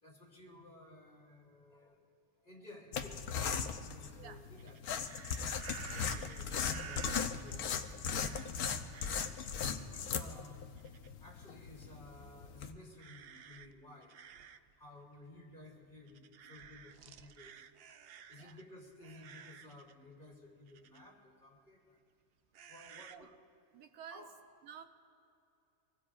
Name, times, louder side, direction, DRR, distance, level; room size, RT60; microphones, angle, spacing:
voice 1, 0.0-2.0 2.4-4.8 5.1-5.2 5.6-7.9 9.8-10.8 11.2-14.2 14.8-17.6 18.3-22.0 22.7-23.3 24.1-24.3, left 2 dB, 30° left, -2 dB, 3.2 m, -55 dB
sound 1, 2.9-12.7, left 6 dB, 80° left, 1.3 m, -38 dB
sound 2, 4.6-7.5 8.1-8.6 8.9-9.6 10.8-11.3 11.8-12.0 13.0-14.7 15.1-15.2 16.1-18.6 19.0-19.9 20.7-21.0 22.5-23.2, right 8 dB, 65° right, 0.6 m, -52 dB
voice 2, 8.2-8.5 18.3-18.6 23.1-23.3 23.7-24.2 24.6-24.8, right 8 dB, 80° right, 7 dB, 1.3 m, -52 dB
25.5 x 20.5 x 2.5 m, 2.5 s
omnidirectional pair, 1.6 m